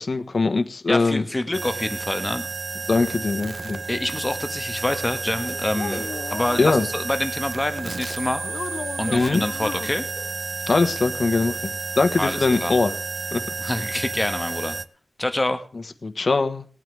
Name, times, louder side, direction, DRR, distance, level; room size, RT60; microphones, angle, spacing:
voice 1, 0.0-1.2 2.9-3.8 6.6-6.9 9.1-9.4 10.7-12.9 13.3-13.4 16.0-16.6, left 3 dB, 60° left, 7 dB, 1.4 m, -21 dB
voice 2, 0.9-2.5 3.9-8.4 9.0-10.1 12.2-12.7 13.6-14.8 15.2-15.6, left 1 dB, 20° left, 8 dB, 1.5 m, -26 dB
sound 1, 1.5-14.8, right 4 dB, 55° right, 0.7 m, -31 dB
sound 2, 3.1-3.2 4.1-4.2 4.9-5.0 5.5-7.4 9.1-9.3 10.2-10.4 11.1-11.3 11.7-11.8 12.1-12.4 13.0-13.2, equal, 15° right, 6.5 m, -43 dB
sound 3, 5.3-6.6 8.4-9.9, left 4 dB, 85° left, 0.8 m, -34 dB
20.5 x 8.9 x 3.4 m, 0.41 s
wide cardioid pair, 100°, 0 cm